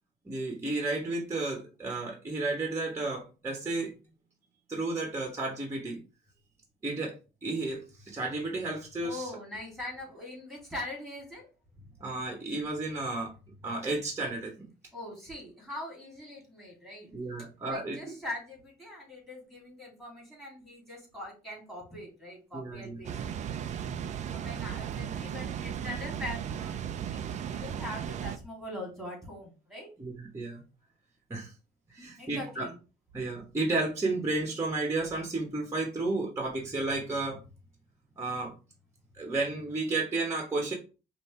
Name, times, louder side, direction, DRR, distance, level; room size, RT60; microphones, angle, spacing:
voice 1, 0.2-3.9 4.7-6.0 6.8-7.1 7.4-9.3 12.0-13.3 13.6-14.7 17.1-18.1 22.5-23.0 30.0-30.6 31.3-31.5 31.9-32.7 33.1-37.4 38.2-38.5 39.1-40.7, right 2 dB, 15° right, 1 dB, 1.2 m, -32 dB
voice 2, 9.0-11.5 14.9-17.1 17.7-23.3 24.3-29.9 32.0-32.8, left 1 dB, ahead, -2 dB, 2.7 m, -42 dB
Water, 23.0-28.4, right 9 dB, 45° right, 0.4 m, -36 dB
5.2 x 2.7 x 3.3 m, 0.32 s
cardioid pair, 110°, 17 cm